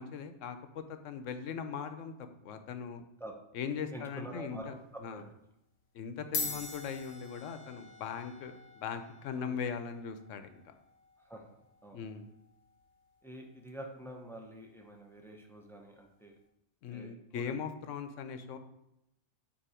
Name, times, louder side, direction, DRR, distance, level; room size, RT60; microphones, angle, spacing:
voice 1, 0.0-2.1 2.4-3.0 3.5-4.7 5.0-5.2 5.9-10.6 11.9-12.3 16.8-18.6, left 6 dB, 85° left, 9 dB, 1.0 m, -40 dB
voice 2, 3.9-5.2 6.3-6.6 9.3-9.6 11.2-11.4 11.8-12.0 13.2-16.4 16.9-17.5, right 1 dB, 5° left, 1 dB, 0.5 m, -47 dB
sound 1, 4.7-5.0 5.8-5.9 6.2-14.9, left 3 dB, 60° left, 1.5 m, -45 dB
6.9 x 2.9 x 4.9 m, 0.84 s
omnidirectional pair, 1.3 m